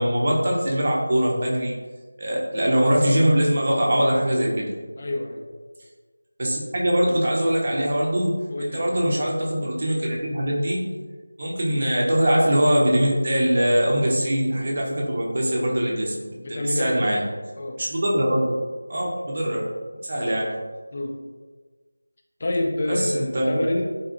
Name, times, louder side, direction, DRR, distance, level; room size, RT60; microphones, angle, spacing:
voice 1, 0.0-1.7 2.2-4.7 6.4-10.8 11.4-17.2 17.8-18.5 18.9-19.7 20.0-20.5 22.9-23.7, equal, 40° right, -2 dB, 0.6 m, -22 dB
voice 2, 5.0-5.4 8.5-8.8 16.1-17.2 17.6-17.8 20.1-20.3 20.9-21.2 22.4-23.8, left 1 dB, 35° left, 1 dB, 0.4 m, -28 dB
4.1 x 2.6 x 2.5 m, 1.4 s
figure-of-eight pair, 170°, 0 cm